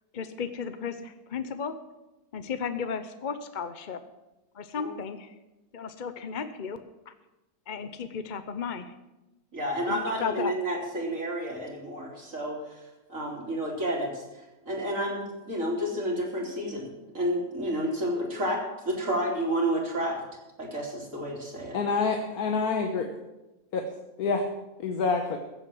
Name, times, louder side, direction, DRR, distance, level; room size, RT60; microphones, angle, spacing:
voice 1, 0.1-1.8 2.3-4.0 4.5-5.3 5.7-6.8 7.1-7.2 7.7-8.9 9.8-10.5, left 6 dB, 45° left, 10 dB, 0.7 m, -34 dB
voice 2, 9.5-12.6 13.1-14.2 14.7-18.6 18.9-20.2 20.6-21.8, equal, 55° right, -1 dB, 3.8 m, -30 dB
voice 3, 21.7-23.1 23.7-23.8 24.2-24.5 24.8-25.4, left 4 dB, 75° left, 4 dB, 1.6 m, -27 dB
15.5 x 7.8 x 7.6 m, 1.0 s
omnidirectional pair, 1.6 m